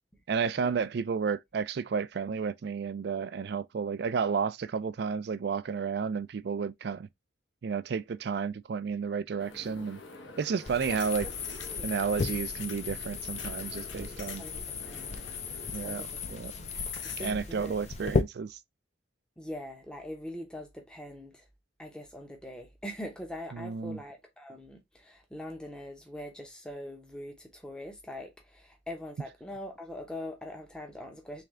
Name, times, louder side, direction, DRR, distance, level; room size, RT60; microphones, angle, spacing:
voice 1, 0.3-7.1 7.6-10.0 10.4-11.3 11.8-14.4 15.7-16.7 17.2-18.5 23.5-24.0, right 5 dB, 55° right, 0.3 m, -32 dB
sound 1, 9.4-17.3, left 7 dB, 70° left, 1.0 m, -40 dB
sound 2, 10.6-18.2, left 3 dB, 35° left, 0.4 m, -37 dB
voice 2, 11.5-11.8 14.3-15.1 15.8-18.1 19.4-21.5 21.8-31.4, left 1 dB, 5° left, 0.7 m, -43 dB
3.4 x 3.3 x 3.5 m
head